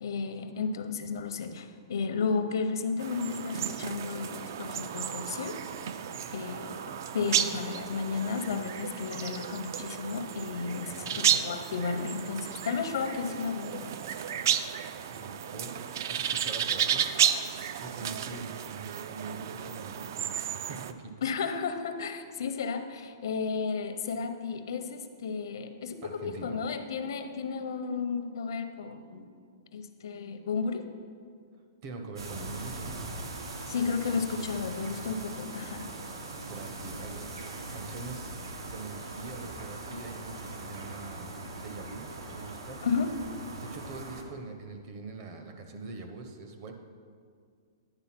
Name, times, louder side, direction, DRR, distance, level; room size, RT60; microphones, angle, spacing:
voice 1, 0.0-5.6 6.3-14.0 21.2-29.3 29.7-30.9 33.7-35.9 42.8-43.1, left 5 dB, 70° left, 8 dB, 0.6 m, -33 dB
sound 1, 3.0-20.9, right 9 dB, 50° right, 0.3 m, -33 dB
voice 2, 10.9-11.2 15.1-15.7 16.1-17.1 17.8-21.1 26.0-26.6 31.8-32.9 36.4-37.4 37.7-42.8 43.6-46.7, right 3 dB, 35° right, 5 dB, 0.7 m, -43 dB
sound 2, 32.2-44.2, right 2 dB, 90° right, 1.0 m, -41 dB
9.9 x 3.8 x 5.8 m, 2.1 s
hypercardioid pair, 165°, 2 cm